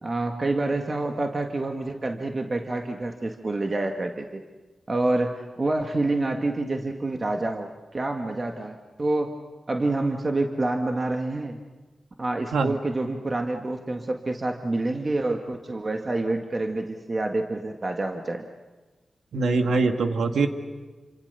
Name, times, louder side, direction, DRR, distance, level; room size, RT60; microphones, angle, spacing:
voice 1, 0.0-4.4 4.9-9.4 9.7-11.6 12.2-18.5, right 2 dB, 40° right, 3 dB, 1.9 m, -27 dB
voice 2, 19.3-20.5, right 3 dB, 90° right, 6 dB, 1.9 m, -23 dB
28.5 x 26.0 x 6.9 m, 1.3 s
cardioid pair, 65°, 0 cm